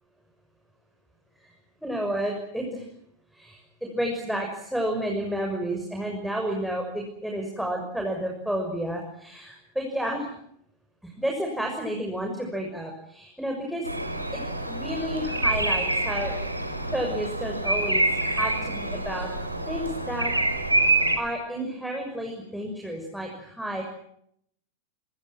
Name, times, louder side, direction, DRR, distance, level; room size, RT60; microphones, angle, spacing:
voice 1, 1.8-2.8 3.3-10.3 11.0-13.9 14.3-14.4 14.7-16.3 16.9-19.3 19.7-20.3 21.2-23.8, equal, ahead, 1 dB, 6.5 m, -31 dB
Bird vocalization bird call bird song, 13.8-21.2, right 2 dB, 85° right, 5.0 m, -26 dB
28.5 x 26.0 x 6.2 m, 0.72 s
figure-of-eight pair, 90°, 0 cm